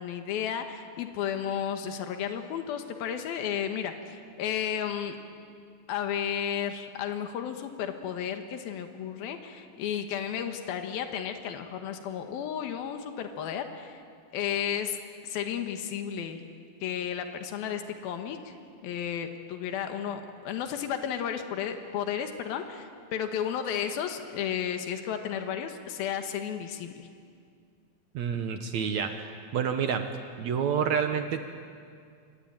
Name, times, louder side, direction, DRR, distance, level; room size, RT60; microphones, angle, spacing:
voice 1, 0.0-5.2 5.9-14.0 14.3-16.4 16.8-18.4 18.8-27.1, left 8 dB, 85° left, 6 dB, 3.3 m, -33 dB
voice 2, 28.1-29.2 29.5-30.1 30.4-31.4, right 7 dB, 60° right, 7 dB, 2.1 m, -28 dB
27.5 x 24.0 x 9.0 m, 2.2 s
omnidirectional pair, 4.2 m